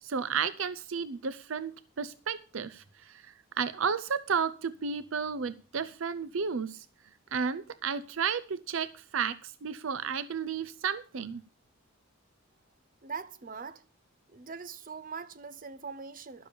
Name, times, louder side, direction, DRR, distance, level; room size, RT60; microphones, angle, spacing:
voice 1, 0.0-6.9 7.3-11.4, right 6 dB, 70° right, 0.6 m, -33 dB
voice 2, 13.0-13.8 14.3-16.5, right 5 dB, 40° right, 0.8 m, -42 dB
12.0 x 7.1 x 6.7 m
head